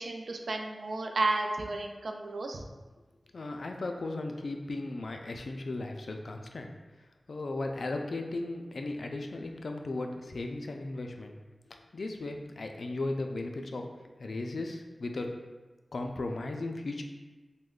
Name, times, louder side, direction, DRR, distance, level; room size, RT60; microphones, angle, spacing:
voice 1, 0.0-2.6, right 2 dB, 85° right, 3 dB, 0.3 m, -32 dB
voice 2, 3.3-6.7 7.3-11.3 11.9-13.9 14.2-15.3 15.9-17.0, left 2 dB, 75° left, 4 dB, 0.3 m, -36 dB
3.1 x 2.1 x 3.7 m, 1.2 s
wide cardioid pair, 70°, 0 cm